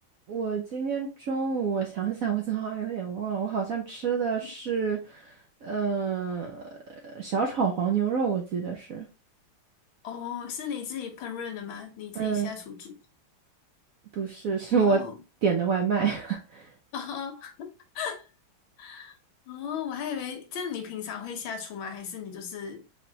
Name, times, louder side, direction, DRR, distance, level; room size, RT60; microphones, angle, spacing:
voice 1, 0.3-5.2 5.6-6.6 7.0-9.1 12.2-12.5 14.2-15.0 15.4-16.6, right 6 dB, 65° right, 0.9 m, -28 dB
voice 2, 10.0-13.0 14.7-15.2 16.9-18.3 18.8-19.2 19.5-22.9, left 7 dB, 80° left, 1.8 m, -36 dB
4.8 x 3.3 x 2.8 m
omnidirectional pair, 2.2 m